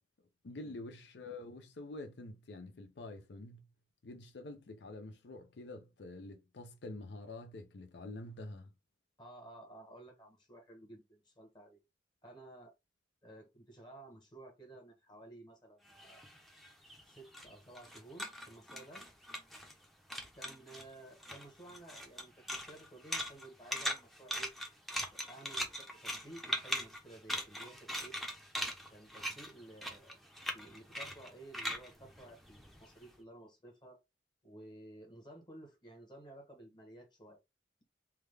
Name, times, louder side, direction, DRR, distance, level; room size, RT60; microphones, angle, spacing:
voice 1, 0.4-3.7 4.0-8.7, left 2 dB, 70° left, 0.5 m, -47 dB
voice 2, 9.2-11.8 12.2-12.7 13.2-16.2 17.1-19.3 20.4-24.5 25.1-28.2 28.9-30.2 30.5-34.0 34.4-37.4, right 2 dB, 25° left, 1.0 m, -54 dB
sound 1, 15.9-19.8 20.1-20.9 21.2-33.0, equal, ahead, 0.6 m, -41 dB
3.4 x 2.2 x 3.2 m
head